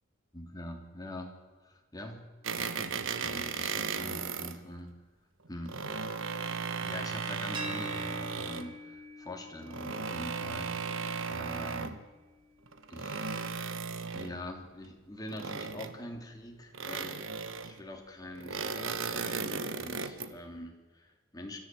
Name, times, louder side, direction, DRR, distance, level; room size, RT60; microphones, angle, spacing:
voice 1, 0.3-2.2 2.5-4.9 5.5-5.8 6.8-11.9 12.9-13.4 14.1-21.6, left 1 dB, 20° left, 2 dB, 3.1 m, -44 dB
sound 1, 2.4-4.6 5.5-8.7 9.6-12.0 12.7-14.4 15.3-16.2 16.7-17.8 18.3-20.3, right 5 dB, 70° right, 1.2 m, -36 dB
sound 2, 7.5-13.3, equal, 25° right, 1.8 m, -46 dB
25.5 x 14.0 x 7.7 m, 1.3 s
head